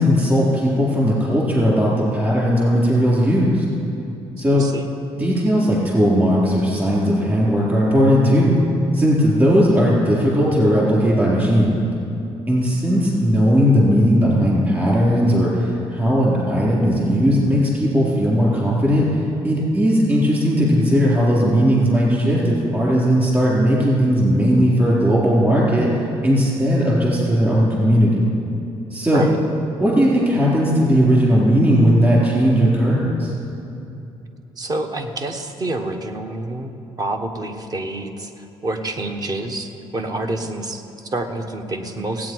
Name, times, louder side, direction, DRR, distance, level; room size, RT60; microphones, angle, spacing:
voice 1, 0.0-3.6 4.4-4.7 5.2-8.6 8.9-11.8 12.5-19.1 19.4-25.9 26.2-28.2 28.9-29.2 29.8-33.3, equal, 20° right, -5 dB, 3.5 m, -17 dB
voice 2, 4.5-4.9 29.1-29.4 34.6-36.7 37.0-42.3, right 2 dB, 40° right, 5 dB, 1.1 m, -28 dB
17.5 x 8.6 x 4.6 m, 2.8 s
cardioid pair, 105°, 10 cm